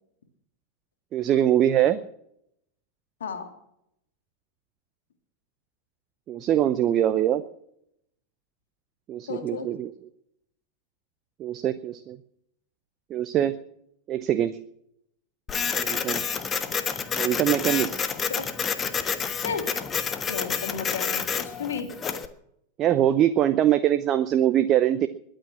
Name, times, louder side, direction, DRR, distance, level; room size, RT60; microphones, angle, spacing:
voice 1, 1.1-2.0 6.3-7.4 9.1-9.9 11.4-12.2 13.1-13.5 14.1-14.6 15.8-16.2 17.2-18.0 22.8-25.1, right 11 dB, 30° right, 12 dB, 0.7 m, -23 dB
voice 2, 9.3-9.7 18.3-18.4 19.4-19.7 20.3-21.9, left 6 dB, 65° left, 6 dB, 2.7 m, -32 dB
Printer, 15.5-22.3, left 6 dB, 20° left, 1.3 m, -29 dB
21.5 x 9.0 x 6.0 m, 0.74 s
figure-of-eight pair, 90°, 0 cm